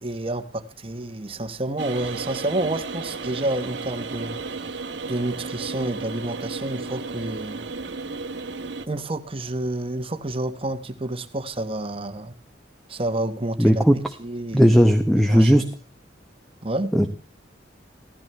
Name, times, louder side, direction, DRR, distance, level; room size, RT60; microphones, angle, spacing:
voice 1, 0.0-4.4 5.1-7.6 8.9-12.3 12.9-13.9 14.2-14.8 15.3-15.6 16.6-16.9, right 1 dB, 30° right, 9 dB, 1.0 m, -29 dB
sound 1, 1.8-8.9, right 4 dB, 80° right, 1.2 m, -33 dB
voice 2, 13.6-14.0 14.5-15.6 16.9-17.2, equal, ahead, 7 dB, 0.8 m, -16 dB
16.5 x 14.0 x 3.3 m, 0.38 s
head